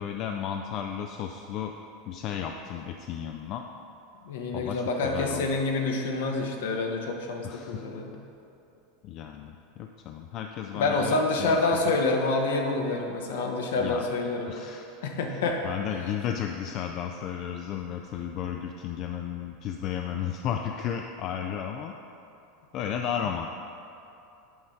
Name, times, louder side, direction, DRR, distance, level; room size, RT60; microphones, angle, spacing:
voice 1, 0.0-1.8 2.1-3.7 4.5-5.5 7.4-7.9 9.0-12.0 13.8-14.1 14.5-14.9 15.4-21.9 22.7-23.5, left 9 dB, 50° left, 4 dB, 0.3 m, -34 dB
voice 2, 4.3-8.1 10.7-14.5 15.0-15.6, left 3 dB, 70° left, 2 dB, 0.9 m, -27 dB
7.9 x 5.1 x 3.6 m, 2.7 s
hypercardioid pair, 90°, 0 cm